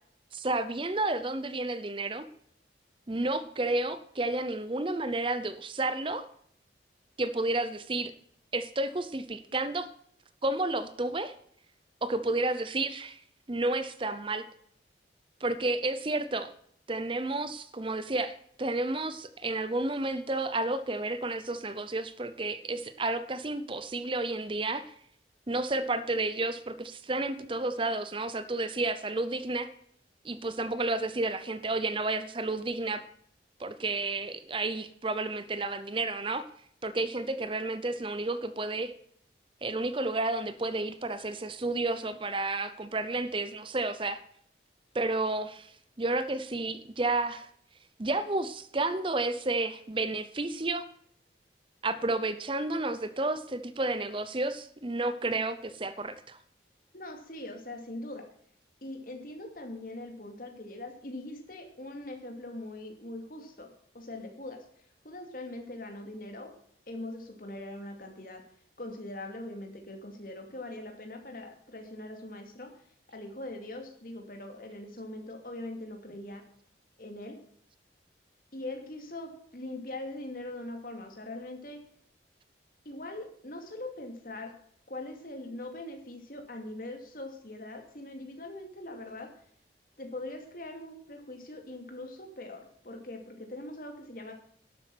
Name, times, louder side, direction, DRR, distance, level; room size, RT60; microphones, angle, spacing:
voice 1, 0.3-2.3 3.1-6.2 7.2-8.1 8.5-9.9 10.4-11.3 12.0-13.2 13.5-14.4 15.4-16.5 16.9-24.8 25.5-29.7 30.2-33.0 33.6-36.4 36.8-38.9 39.6-44.2 44.9-45.7 46.0-47.5 48.0-50.9 51.8-56.4, right 2 dB, 30° right, 13 dB, 0.7 m, -31 dB
voice 2, 56.9-58.3 58.8-64.7 65.0-66.5 66.9-68.4 68.8-72.7 73.1-76.4 77.0-77.4 78.5-81.8 82.8-84.6 84.9-89.3 90.0-94.3, left 1 dB, 50° left, 4 dB, 2.6 m, -41 dB
12.0 x 8.3 x 6.0 m, 0.65 s
head